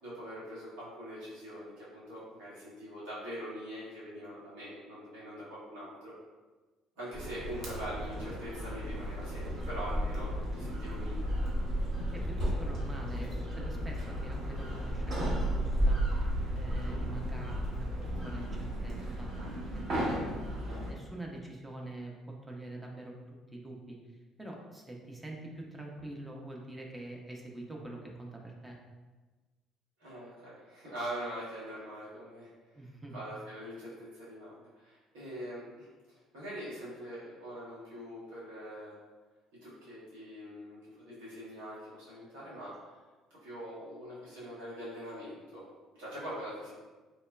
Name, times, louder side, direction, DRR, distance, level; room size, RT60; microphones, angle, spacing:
voice 1, 0.0-6.1 7.0-11.3 30.0-32.5 33.1-38.9 39.6-43.0 43.3-45.6 45.9-46.7, equal, 85° right, -9 dB, 1.2 m, -43 dB
sound 1, 7.1-20.9, equal, 60° right, 0.9 m, -33 dB
voice 2, 12.1-16.0 16.5-17.9 18.2-19.3 19.7-20.0 20.3-22.1 22.5-23.1 23.5-28.8 32.7-33.2, right 1 dB, 15° right, -1 dB, 0.5 m, -45 dB
3.0 x 2.0 x 2.2 m, 1.3 s
hypercardioid pair, 65°, 0 cm